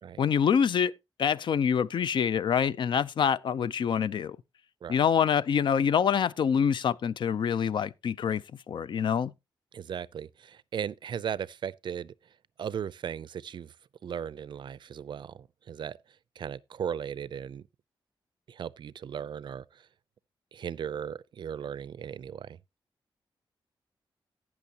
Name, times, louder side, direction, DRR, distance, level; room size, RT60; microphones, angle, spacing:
voice 1, 0.2-0.9 1.2-4.4 4.9-8.4 8.7-9.3, left 7 dB, 65° left, 0.5 m, -26 dB
voice 2, 9.7-12.1 12.6-13.7 14.0-16.0 16.4-17.6 18.5-19.6 20.5-22.6, right 8 dB, 60° right, 0.4 m, -37 dB
17.5 x 6.0 x 2.8 m
wide cardioid pair, 110°, 9 cm